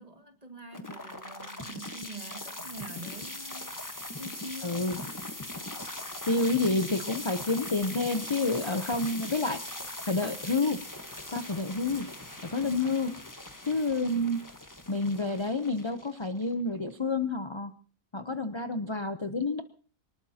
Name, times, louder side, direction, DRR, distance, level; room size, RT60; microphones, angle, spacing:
voice 1, 0.0-3.8 4.1-4.8, right 1 dB, 25° right, 4 dB, 1.9 m, -45 dB
sound 1, 0.7-16.7, left 1 dB, 15° left, 1.1 m, -40 dB
voice 2, 4.6-5.0 6.3-9.6 10.1-10.8 11.3-12.1 12.5-13.1 13.7-14.4 14.9-17.7 18.1-19.6, left 3 dB, 35° left, 8 dB, 0.5 m, -29 dB
25.5 x 19.5 x 2.9 m, 0.40 s
omnidirectional pair, 1.7 m